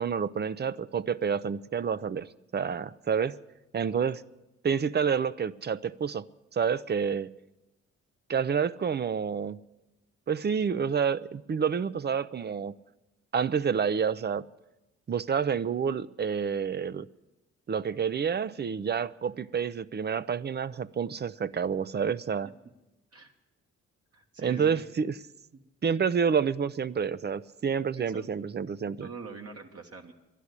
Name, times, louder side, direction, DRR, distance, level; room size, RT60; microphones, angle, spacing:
voice 1, 0.0-2.3 2.5-3.4 3.7-4.2 4.6-6.2 6.5-7.3 8.3-9.6 10.3-12.7 13.3-14.4 15.1-17.1 17.7-22.5 24.4-25.1 25.8-29.1, right 6 dB, 35° right, 18 dB, 0.5 m, -28 dB
voice 2, 24.1-24.9 28.0-28.4 29.0-30.1, right 4 dB, 50° right, 2 dB, 1.4 m, -44 dB
12.0 x 10.0 x 9.6 m, 0.99 s
cardioid pair, 70°, 30 cm